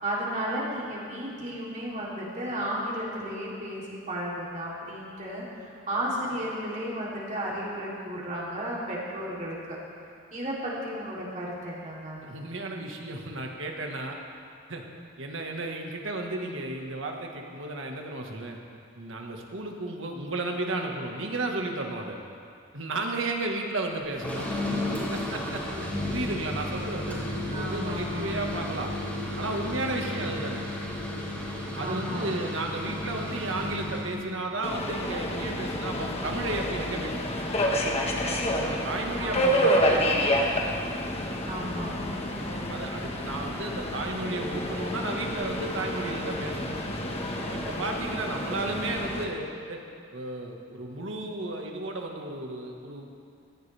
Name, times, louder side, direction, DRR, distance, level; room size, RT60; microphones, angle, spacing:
voice 1, 0.0-9.8 10.3-12.2 25.5-26.5 27.5-28.5 31.8-32.5 39.2-39.7 41.4-42.1, equal, 40° right, -6 dB, 3.4 m, -34 dB
voice 2, 12.2-14.2 14.7-14.8 15.2-18.6 18.9-22.2 22.7-24.5 25.1-28.9 29.4-30.6 31.8-37.3 38.6-40.3 42.7-46.7 47.5-49.8 50.1-53.1, right 2 dB, 70° right, 1 dB, 1.7 m, -33 dB
sound 1, 24.1-34.1, left 1 dB, 10° left, 3.9 m, -33 dB
Subway metro underground, 34.6-49.2, equal, 30° left, 1.4 m, -29 dB
17.5 x 15.0 x 3.5 m, 2.4 s
head